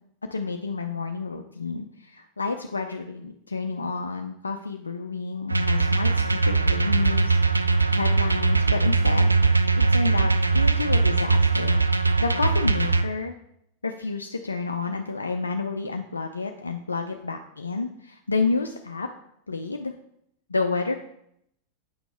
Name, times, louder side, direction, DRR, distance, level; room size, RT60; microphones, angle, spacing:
voice 1, 0.3-9.3 9.7-13.4 13.8-19.1 19.5-19.9 20.5-21.0, left 4 dB, 75° left, 5 dB, 0.4 m, -30 dB
sound 1, 5.5-13.0, right 3 dB, 80° right, 0.4 m, -21 dB
8.6 x 6.0 x 3.4 m, 0.76 s
figure-of-eight pair, 90°, 0 cm